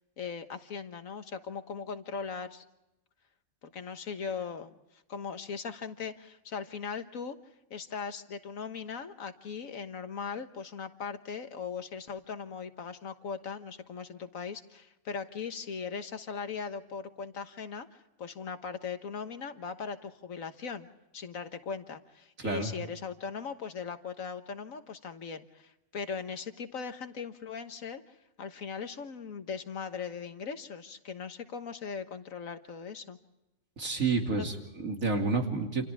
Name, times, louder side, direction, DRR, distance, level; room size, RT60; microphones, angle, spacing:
voice 1, 0.2-2.6 3.6-4.7 5.1-7.4 7.7-17.9 18.2-20.9 21.1-28.0 28.4-33.2 34.3-34.5, left 6 dB, 90° left, 8 dB, 1.7 m, -39 dB
voice 2, 22.4-22.7 33.8-35.9, right 3 dB, 85° right, 2 dB, 3.2 m, -30 dB
28.5 x 27.5 x 3.6 m, 0.93 s
omnidirectional pair, 1.4 m